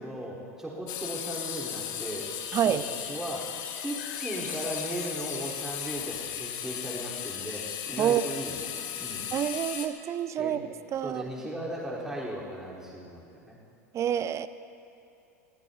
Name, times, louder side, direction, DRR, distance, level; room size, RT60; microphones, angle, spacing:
voice 1, 0.0-2.3 2.6-2.8 3.1-8.7 9.0-9.3 10.4-10.6 11.0-13.6, right 1 dB, 5° right, -6 dB, 3.9 m, -37 dB
sound 1, 0.9-9.9, left 9 dB, 50° left, 1.1 m, -36 dB
voice 2, 2.5-2.8 8.0-8.2 9.3-10.6 10.9-11.2 13.9-14.5, right 10 dB, 35° right, 14 dB, 0.5 m, -27 dB
sound 2, 3.7-6.5, left 5 dB, 80° left, 1.4 m, -46 dB
21.5 x 15.0 x 2.8 m, 2.7 s
hypercardioid pair, 90°, 9 cm